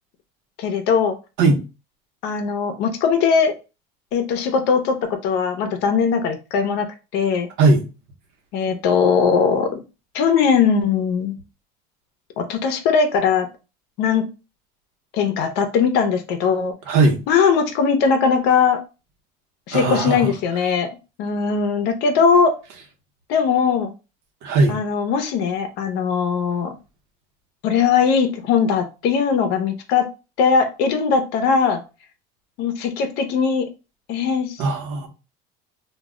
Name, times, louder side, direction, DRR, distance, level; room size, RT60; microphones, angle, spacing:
voice 1, 0.6-1.2 2.2-3.5 4.1-6.9 7.1-7.5 8.5-9.8 10.1-11.3 12.4-13.5 14.0-14.3 15.1-16.7 17.3-18.8 19.7-20.9 21.2-22.5 23.3-23.9 24.7-26.7 27.6-30.1 30.4-31.8 32.6-33.7 34.1-34.6, left 6 dB, 70° left, 0.6 m, -19 dB
voice 2, 16.9-17.2 19.7-20.3 24.4-24.8 34.6-35.1, right 3 dB, 85° right, 0.8 m, -18 dB
2.3 x 2.1 x 3.5 m
cardioid pair, 165°, 18 cm